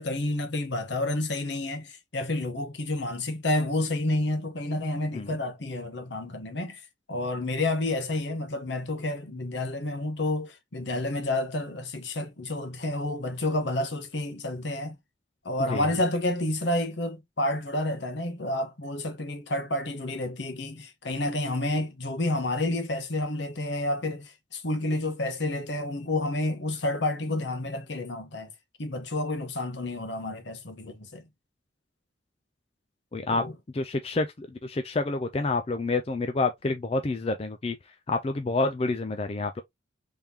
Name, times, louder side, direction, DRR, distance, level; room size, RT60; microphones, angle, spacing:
voice 1, 0.0-6.8 7.1-15.0 15.4-28.5 28.8-31.2 33.3-33.5, left 1 dB, 70° left, 1.1 m, -30 dB
voice 2, 33.1-33.4 33.7-37.8 38.1-39.6, left 3 dB, 30° left, 0.4 m, -28 dB
3.6 x 3.4 x 2.8 m
head